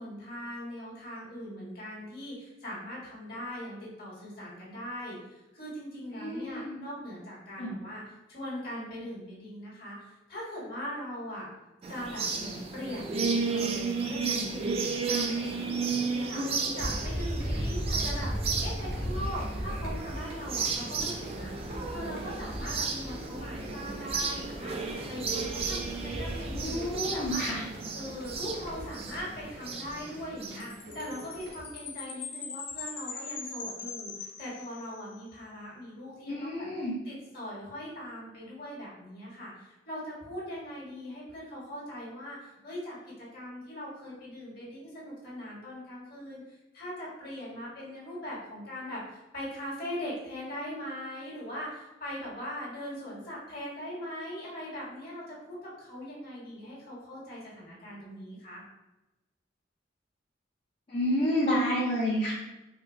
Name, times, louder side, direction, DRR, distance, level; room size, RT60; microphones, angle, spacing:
voice 1, 0.0-8.0 8.3-11.5 11.9-13.2 13.5-18.3 18.6-21.5 21.9-27.5 27.9-36.7 37.1-58.6, equal, 55° left, -6 dB, 1.3 m, -40 dB
voice 2, 6.1-6.8 7.6-7.7 26.5-27.6 36.2-36.9 60.9-62.3, equal, 35° left, -8 dB, 0.6 m, -29 dB
sound 1, 11.8-30.6, right 4 dB, 30° right, 0.3 m, -33 dB
sound 2, 16.8-31.6, equal, 55° right, 0.7 m, -38 dB
Chime, 30.6-35.1, left 5 dB, 85° left, 0.7 m, -41 dB
3.8 x 2.0 x 3.1 m, 1.0 s
head